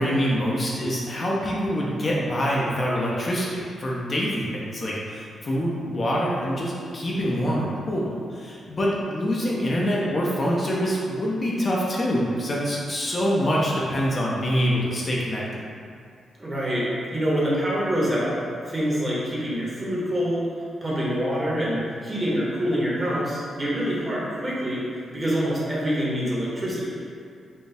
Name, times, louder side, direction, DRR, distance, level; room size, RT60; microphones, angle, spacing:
voice 1, 0.0-15.4, equal, 40° left, -4 dB, 0.6 m, -25 dB
voice 2, 16.4-18.4 18.7-20.5 20.8-24.8 25.1-27.0, equal, 25° right, -6 dB, 1.1 m, -26 dB
4.2 x 2.3 x 3.4 m, 2.3 s
cardioid pair, 90°, 0 cm